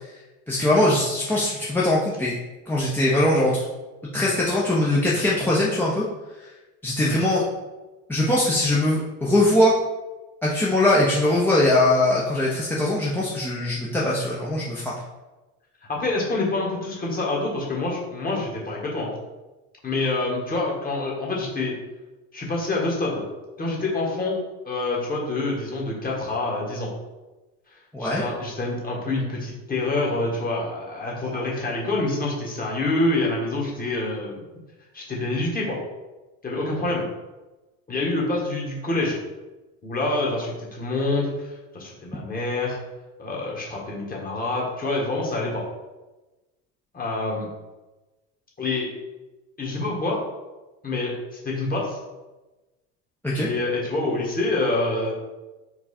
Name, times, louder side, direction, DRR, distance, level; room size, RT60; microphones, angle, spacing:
voice 1, 0.5-2.3 2.7-3.6 4.1-6.0 6.8-7.4 8.1-9.7 10.4-14.9 27.9-28.2 53.2-53.5, left 1 dB, 5° left, -7 dB, 0.7 m, -21 dB
voice 2, 15.9-19.1 19.8-21.7 22.3-23.2 23.6-24.4 24.6-26.9 28.0-34.4 34.9-35.8 36.4-37.1 37.9-39.2 39.8-42.8 43.2-45.6 46.9-47.5 48.6-48.9 49.6-50.2 50.8-52.0 53.4-55.1, left 2 dB, 25° left, -3 dB, 1.5 m, -26 dB
4.6 x 2.4 x 4.2 m, 1.1 s
supercardioid pair, 95°, 36 cm